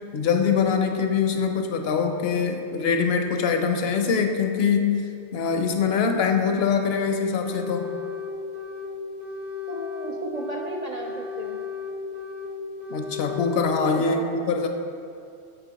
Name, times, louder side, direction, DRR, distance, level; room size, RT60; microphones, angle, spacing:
voice 1, 0.1-5.0 5.3-7.9 12.9-14.7, left 6 dB, 70° left, 5 dB, 0.8 m, -23 dB
sound 1, 6.7-7.1 7.4-8.9 9.2-10.7 11.0-12.5 12.8-13.7, left 5 dB, 40° right, 0.9 m, -35 dB
voice 2, 9.7-11.6 14.0-14.3, right 2 dB, 60° right, -1 dB, 0.4 m, -34 dB
8.0 x 4.1 x 4.0 m, 2.5 s
omnidirectional pair, 1.1 m